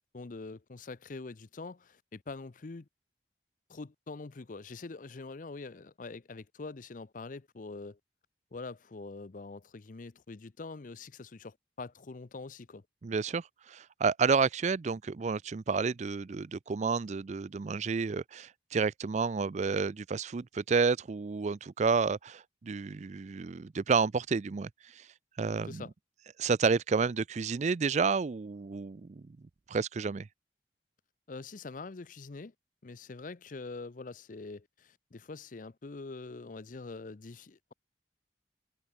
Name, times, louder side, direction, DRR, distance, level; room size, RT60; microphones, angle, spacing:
voice 1, 0.0-2.9 3.7-8.0 8.5-12.8 25.6-25.9 31.3-32.5 32.8-37.7, left 3 dB, 50° left, 0.6 m, -44 dB
voice 2, 13.0-25.1 25.4-25.8 26.4-29.4 29.7-30.3, right 5 dB, 40° right, 0.4 m, -30 dB
head